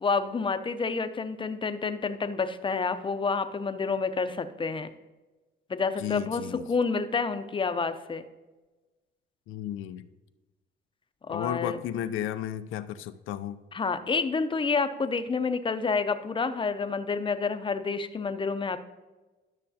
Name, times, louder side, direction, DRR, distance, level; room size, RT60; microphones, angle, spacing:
voice 1, 0.0-4.9 5.7-8.3 11.3-11.8 13.7-18.8, left 4 dB, 25° left, 10 dB, 0.6 m, -29 dB
voice 2, 6.0-6.7 9.5-10.1 11.3-13.6, left 11 dB, 90° left, 11 dB, 0.5 m, -33 dB
12.0 x 6.5 x 2.8 m, 1.2 s
cardioid pair, 90°, 20 cm